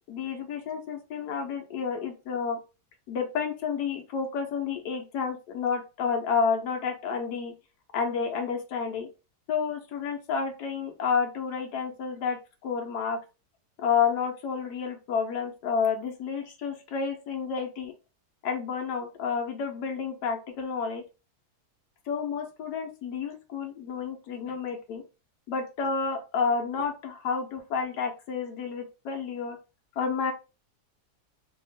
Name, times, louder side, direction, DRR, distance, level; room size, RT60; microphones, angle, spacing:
voice 1, 0.1-2.6 3.1-7.5 7.9-9.1 9.5-13.2 13.8-17.9 18.4-21.0 22.1-25.0 25.5-29.6 30.0-30.3, left 6 dB, 80° left, 3 dB, 1.3 m, -30 dB
2.9 x 2.8 x 4.0 m, 0.30 s
omnidirectional pair, 1.7 m